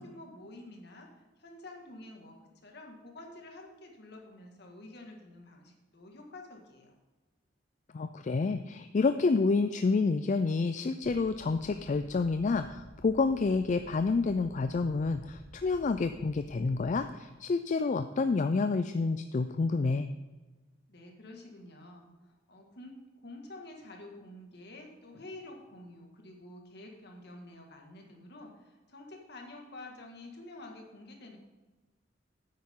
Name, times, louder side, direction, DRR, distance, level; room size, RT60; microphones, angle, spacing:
voice 1, 0.0-2.4 2.6-6.9 20.9-31.4, left 2 dB, 60° left, 2 dB, 1.9 m, -49 dB
voice 2, 7.9-20.1, left 4 dB, 40° left, 9 dB, 0.4 m, -29 dB
sound 1, 11.0-17.0, equal, 15° left, 0.8 m, -53 dB
9.6 x 8.7 x 3.7 m, 1.2 s
head